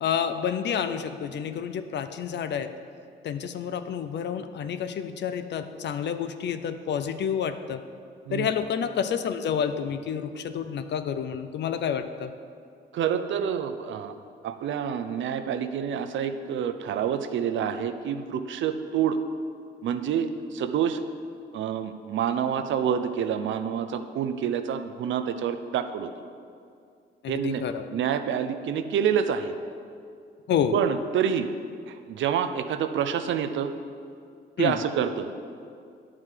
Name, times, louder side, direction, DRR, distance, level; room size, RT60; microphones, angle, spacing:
voice 1, 0.0-2.7 3.2-7.8 8.3-12.3 27.2-27.8 30.5-30.8 34.6-34.8, left 8 dB, 60° left, 10 dB, 0.6 m, -29 dB
voice 2, 12.9-14.2 14.4-19.2 19.8-21.0 21.5-26.1 27.3-27.6 27.9-29.5 30.7-31.5 31.9-33.7 34.6-35.3, right 8 dB, 70° right, 9 dB, 0.7 m, -27 dB
9.7 x 4.8 x 7.4 m, 2.3 s
cardioid pair, 90°, 20 cm